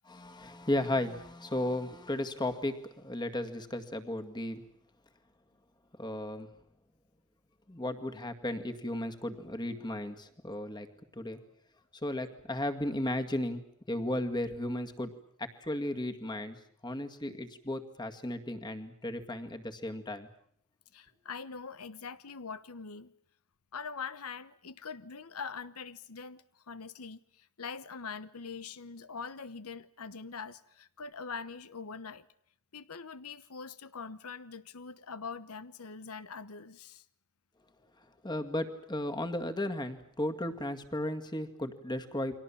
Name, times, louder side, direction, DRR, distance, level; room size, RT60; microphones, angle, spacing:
voice 1, 0.1-4.6 6.0-6.5 7.7-10.9 11.2-11.4 12.0-15.1 15.4-16.6 16.8-20.3 38.2-42.4, left 1 dB, 20° left, 2.0 m, -35 dB
voice 2, 20.9-23.1 23.7-32.3 32.7-37.0, left 5 dB, 90° left, 1.1 m, -43 dB
30.0 x 24.0 x 7.2 m
head